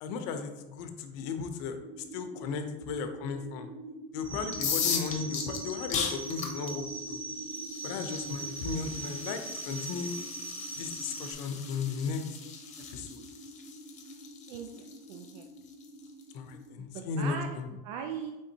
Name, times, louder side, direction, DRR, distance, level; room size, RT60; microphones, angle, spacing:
voice 1, 0.0-1.8 2.1-3.7 4.1-7.2 7.8-9.4 9.7-10.1 10.8-12.2 12.9-13.2 16.3-17.7, left 5 dB, 80° left, 7 dB, 0.6 m, -35 dB
sound 1, 1.8-16.8, right 1 dB, 45° right, 0.8 m, -46 dB
sound 2, 4.2-11.3, right 3 dB, 5° right, 0.5 m, -41 dB
sound 3, 4.5-16.2, left 6 dB, 35° left, 0.8 m, -38 dB
voice 2, 14.5-15.5 16.8-18.3, right 7 dB, 90° right, 4 dB, 0.4 m, -40 dB
5.2 x 3.4 x 2.8 m, 1.1 s
cardioid pair, 130°, 20 cm